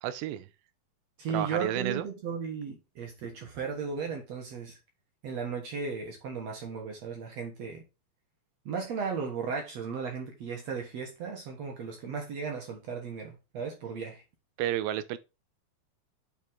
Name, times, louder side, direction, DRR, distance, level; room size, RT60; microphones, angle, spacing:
voice 1, 0.0-0.5 1.3-2.1 14.6-15.2, right 12 dB, 80° right, 2.4 m, -31 dB
voice 2, 1.2-4.8 5.2-7.8 8.6-14.2, right 5 dB, 65° right, 1.8 m, -36 dB
9.2 x 4.3 x 3.7 m
omnidirectional pair, 4.3 m